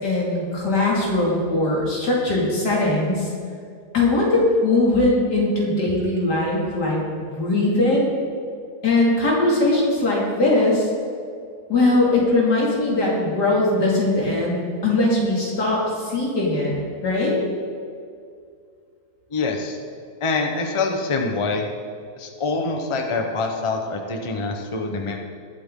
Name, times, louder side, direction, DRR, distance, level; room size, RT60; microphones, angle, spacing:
voice 1, 0.0-3.3 3.9-7.0 7.3-8.1 8.8-10.9 11.7-16.8 17.0-17.4, left 2 dB, 85° left, -4 dB, 3.1 m, -20 dB
voice 2, 19.3-19.8 20.2-21.7 22.2-25.2, left 3 dB, 25° left, 3 dB, 0.8 m, -25 dB
21.0 x 7.9 x 3.8 m, 2.3 s
omnidirectional pair, 1.7 m